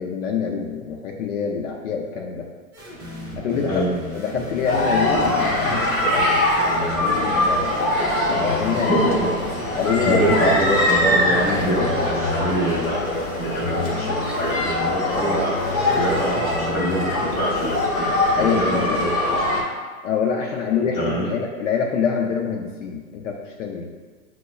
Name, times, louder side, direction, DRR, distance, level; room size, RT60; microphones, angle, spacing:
voice 1, 0.0-2.5 3.4-3.8 4.1-6.3 6.7-7.8 8.3-9.0 9.7-10.2 18.4-19.1 20.0-23.9, left 6 dB, 65° left, 0 dB, 0.5 m, -25 dB
sound 1, 2.7-17.9, equal, 20° right, 0.4 m, -35 dB
sound 2, 4.7-19.6, left 1 dB, 40° left, 1.0 m, -23 dB
voice 2, 8.9-9.3 10.0-19.4 20.9-21.3, equal, 20° left, -7 dB, 0.7 m, -24 dB
5.6 x 2.0 x 2.2 m, 1.4 s
hypercardioid pair, 165°, 41 cm